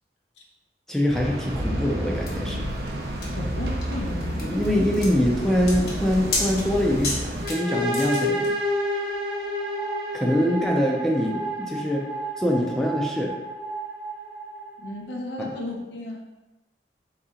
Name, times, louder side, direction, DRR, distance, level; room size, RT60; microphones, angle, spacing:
voice 1, 0.9-2.6 4.4-8.5 10.1-12.0 12.4-13.3 15.4-15.5, equal, 5° left, -1 dB, 0.4 m, -24 dB
sound 1, 1.1-7.5, equal, 70° right, 0.6 m, -30 dB
sound 2, 2.3-8.5, left 2 dB, 60° left, 1.0 m, -33 dB
voice 2, 3.4-4.8 10.5-10.7 14.8-16.4, left 1 dB, 85° left, -2 dB, 0.8 m, -34 dB
sound 3, 7.4-15.1, equal, 25° right, 0.9 m, -30 dB
4.0 x 2.8 x 3.7 m, 1.0 s
head